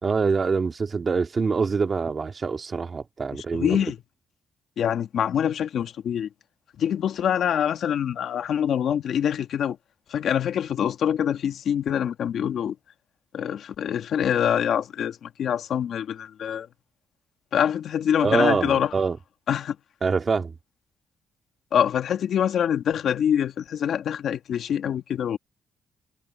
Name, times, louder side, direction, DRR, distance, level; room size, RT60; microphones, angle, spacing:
voice 1, 0.0-3.8 18.2-19.2 20.0-20.6, right 5 dB, 35° right, 2.0 m, -25 dB
voice 2, 3.5-4.0 4.8-6.3 6.8-9.8 10.1-12.7 13.3-16.7 17.5-18.9 19.5-19.8 21.7-25.4, left 9 dB, 65° left, 1.8 m, -25 dB
cardioid pair, 90°, 0 cm